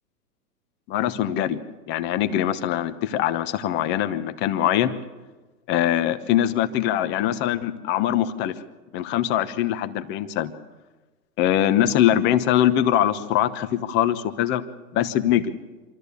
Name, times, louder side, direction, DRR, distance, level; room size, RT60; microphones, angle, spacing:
voice 1, 0.9-1.6 1.9-4.9 5.7-8.5 8.9-10.5 11.4-14.6 14.9-15.5, left 11 dB, 25° left, 10 dB, 1.1 m, -22 dB
25.5 x 13.5 x 8.4 m, 1.2 s
hypercardioid pair, 140°, 46 cm